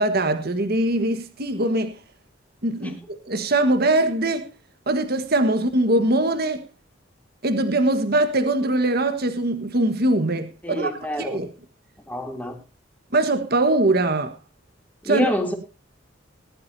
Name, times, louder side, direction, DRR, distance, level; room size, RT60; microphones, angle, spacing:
voice 1, 0.0-2.0 2.6-4.5 4.9-6.6 7.4-11.5 13.1-14.3 15.0-15.3, right 2 dB, 55° right, 1.5 m, -22 dB
voice 2, 10.6-11.4 12.1-12.6 15.0-15.5, left 1 dB, 10° left, 3.2 m, -27 dB
19.5 x 12.0 x 2.8 m
head